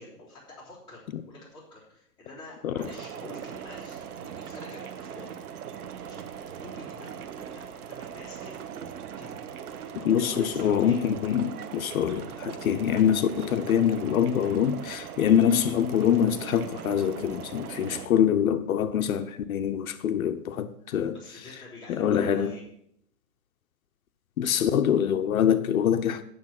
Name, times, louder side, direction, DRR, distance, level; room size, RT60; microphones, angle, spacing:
voice 1, 0.0-5.3 6.0-6.3 6.6-8.6 9.2-9.4 10.0-11.0 21.1-22.6, left 2 dB, 10° left, 3.6 m, -47 dB
sound 1, 2.8-18.1, right 8 dB, 65° right, 1.2 m, -40 dB
voice 2, 10.0-21.1 21.9-22.6 24.4-26.2, left 9 dB, 60° left, 0.7 m, -24 dB
9.4 x 7.0 x 5.8 m
hypercardioid pair, 165°, 48 cm